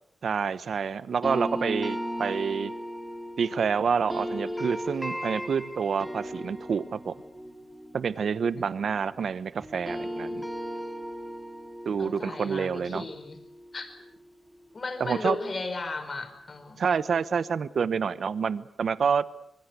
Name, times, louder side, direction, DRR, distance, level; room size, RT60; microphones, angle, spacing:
voice 1, 0.2-2.7 3.4-7.1 7.9-10.4 11.8-13.0 15.0-15.4 16.8-19.2, right 6 dB, 70° right, 15 dB, 1.0 m, -28 dB
sound 1, 1.2-9.3 9.6-14.6, equal, ahead, 2.8 m, -37 dB
voice 2, 12.0-13.4 13.7-13.9 14.7-16.9, left 3 dB, 45° left, 9 dB, 5.0 m, -35 dB
26.5 x 22.0 x 8.2 m, 0.70 s
cardioid pair, 75°, 0 cm